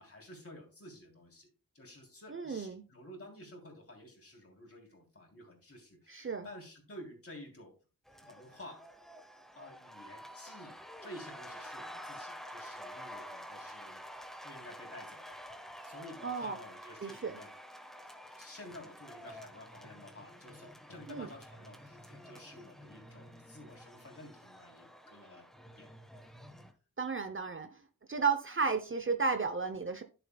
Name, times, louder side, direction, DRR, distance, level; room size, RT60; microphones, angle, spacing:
voice 1, 0.0-1.5 1.7-7.7 8.2-8.8 9.5-14.0 14.4-15.4 15.8-17.5 18.2-25.5 25.8-25.9, left 1 dB, 40° left, 3.3 m, -51 dB
voice 2, 2.3-2.8 6.1-6.5 16.2-16.6 17.0-17.3 21.1-21.3 27.0-27.8 28.1-30.0, right 5 dB, 35° right, 0.7 m, -33 dB
sound 1, 8.1-26.7, equal, ahead, 1.2 m, -49 dB
12.0 x 6.9 x 2.3 m
wide cardioid pair, 110°, 34 cm